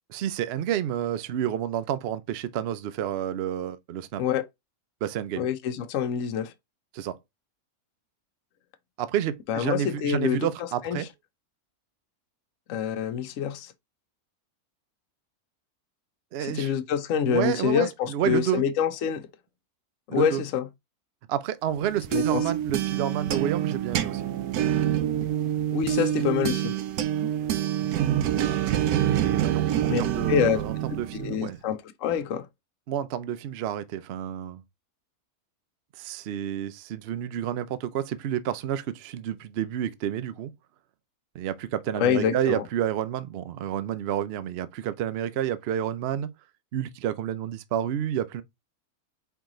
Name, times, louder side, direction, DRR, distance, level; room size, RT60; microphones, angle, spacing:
voice 1, 0.1-4.2 5.0-5.5 6.9-7.2 9.0-11.1 16.3-16.7 17.2-18.6 20.1-20.4 21.3-24.2 29.1-31.6 32.9-34.6 36.0-40.5 41.3-46.3 46.7-48.4, right 10 dB, 65° right, 0.6 m, -30 dB
voice 2, 5.4-6.5 9.5-10.5 10.8-11.0 12.7-13.7 16.4-19.3 20.1-20.7 22.1-22.4 25.7-26.7 29.9-30.6 31.1-32.5 41.9-42.6, left 8 dB, 65° left, 0.9 m, -26 dB
sound 1, 21.8-31.4, right 11 dB, 85° right, 1.1 m, -26 dB
4.7 x 3.0 x 3.7 m
omnidirectional pair, 1.6 m